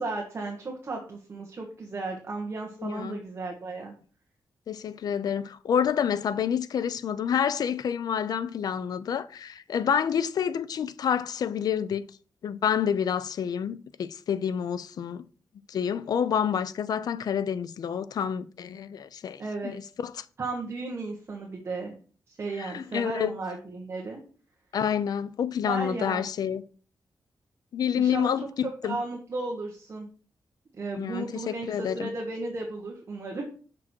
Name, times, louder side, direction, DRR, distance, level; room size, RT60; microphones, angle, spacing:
voice 1, 0.0-3.9 19.4-19.7 20.4-21.9 22.3-24.2 25.7-26.3 27.9-28.3 28.8-30.1 30.8-33.5, right 3 dB, 35° right, 1.4 m, -34 dB
voice 2, 2.8-3.2 4.7-12.1 12.4-15.2 15.7-20.2 22.6-23.3 24.7-26.6 27.7-29.0 31.0-32.1, left 8 dB, 65° left, 0.5 m, -28 dB
6.2 x 6.1 x 4.4 m
wide cardioid pair, 165°, 7 cm